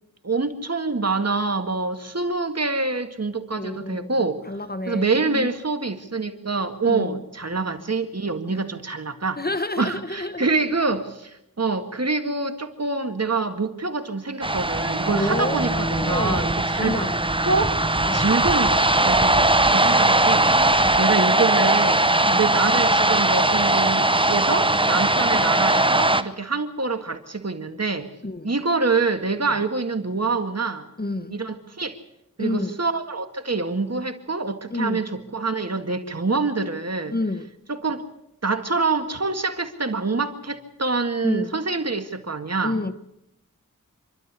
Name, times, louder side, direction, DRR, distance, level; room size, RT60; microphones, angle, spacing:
voice 1, 0.2-4.4 4.9-9.4 9.8-17.1 17.5-17.8 18.1-22.0 22.4-28.1 28.4-30.8 31.3-32.0 32.4-37.1 37.7-38.1 38.4-42.7, right 3 dB, 50° right, 1.9 m, -26 dB
voice 2, 3.6-5.5 6.9-7.2 8.5-8.6 9.4-10.5 15.1-17.3 18.0-18.3 19.3-19.6 20.8-21.1 22.2-22.5 28.2-28.5 31.0-31.4 32.4-32.8 34.7-35.1 37.1-37.5 41.2-41.6 42.6-42.9, left 2 dB, 30° left, 1.1 m, -30 dB
sound 1, 14.4-26.2, right 2 dB, 15° right, 0.9 m, -20 dB
27.0 x 12.0 x 8.3 m
wide cardioid pair, 50°, 33 cm